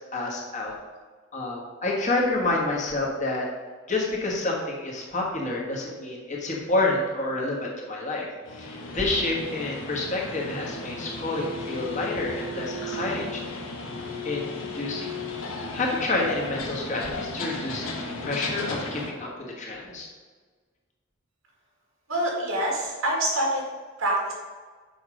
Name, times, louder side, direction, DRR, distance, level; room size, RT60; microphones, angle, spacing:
voice 1, 0.1-0.7 1.3-3.5 3.9-13.7 14.2-15.1 15.7-20.1, left 2 dB, 35° left, -2 dB, 1.4 m, -29 dB
sound 1, 8.4-19.1, left 2 dB, 85° left, 1.1 m, -35 dB
voice 2, 22.1-23.6 24.0-24.3, right 1 dB, 85° right, -1 dB, 2.1 m, -25 dB
7.1 x 4.4 x 5.0 m, 1.4 s
head